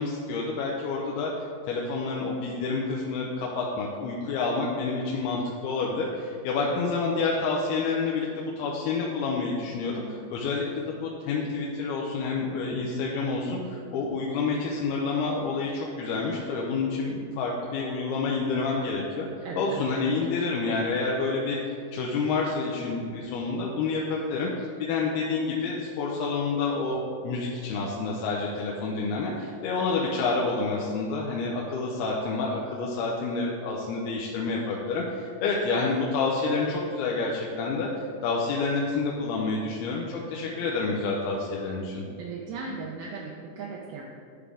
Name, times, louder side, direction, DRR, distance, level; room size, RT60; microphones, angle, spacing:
voice 1, 0.0-1.3 1.7-21.6 21.9-24.5 24.8-37.9 38.2-42.0, left 4 dB, 90° left, -3 dB, 2.6 m, -28 dB
voice 2, 19.4-20.3 40.4-40.7 42.2-44.0, right 4 dB, 80° right, -2 dB, 2.5 m, -38 dB
11.0 x 4.9 x 3.5 m, 2.3 s
omnidirectional pair, 4.4 m